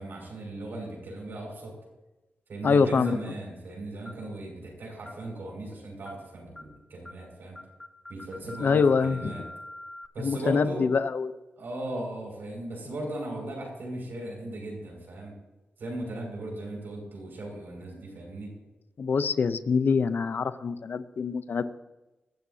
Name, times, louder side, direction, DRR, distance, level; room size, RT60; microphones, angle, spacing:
voice 1, 0.0-1.7 2.5-7.6 8.1-9.4 10.1-10.9 11.6-15.3 15.8-18.5, right 1 dB, 70° right, 0 dB, 5.9 m, -37 dB
voice 2, 2.6-3.2 8.6-9.3 10.2-11.4 19.0-21.6, left 5 dB, 60° left, 12 dB, 0.7 m, -25 dB
sound 1, 3.1-3.3 4.1-4.3 5.1-5.3 6.1-6.3 6.6-6.8 7.1-7.3 7.6-10.1, left 1 dB, 15° left, 0.9 m, -45 dB
22.5 x 12.5 x 2.8 m, 1.1 s
cardioid pair, 70°, 4 cm